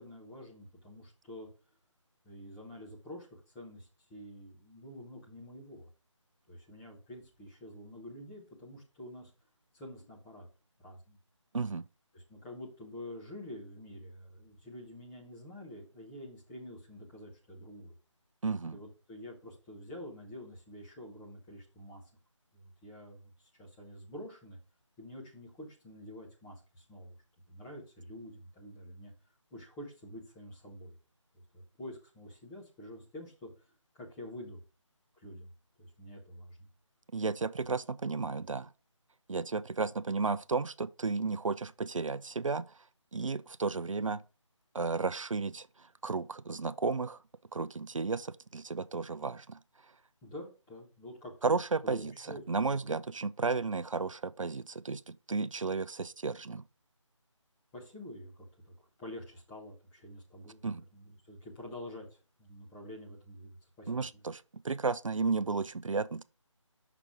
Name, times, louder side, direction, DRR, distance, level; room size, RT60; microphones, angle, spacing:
voice 1, 0.0-1.5 2.2-5.9 6.5-9.3 9.7-10.5 10.8-11.2 12.1-17.9 18.7-22.0 22.5-24.6 25.0-27.2 27.5-29.1 29.5-30.9 31.3-33.7 33.9-34.6 35.2-35.5 35.8-36.7 50.2-51.6 51.8-52.4 52.7-53.0 57.7-58.5 58.8-64.0, left 1 dB, 5° left, 0.8 m, -48 dB
voice 2, 18.4-18.8 37.1-38.7 39.3-42.8 43.1-44.2 44.7-47.2 47.5-49.6 51.4-56.6 60.6-60.8 63.9-66.2, right 4 dB, 75° right, 0.4 m, -33 dB
6.0 x 5.9 x 3.5 m
figure-of-eight pair, 160°, 16 cm